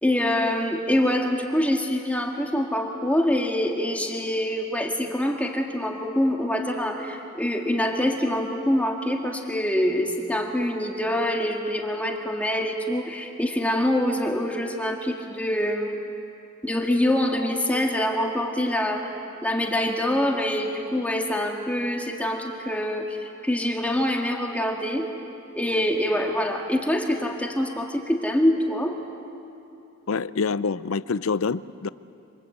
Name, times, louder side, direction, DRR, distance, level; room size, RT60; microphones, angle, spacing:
voice 1, 0.0-16.0 16.6-19.1 19.4-25.1 25.6-28.9, left 1 dB, 5° left, 1 dB, 1.8 m, -25 dB
voice 2, 30.1-31.9, left 4 dB, 75° left, 16 dB, 0.6 m, -26 dB
28.0 x 25.5 x 8.2 m, 2.8 s
head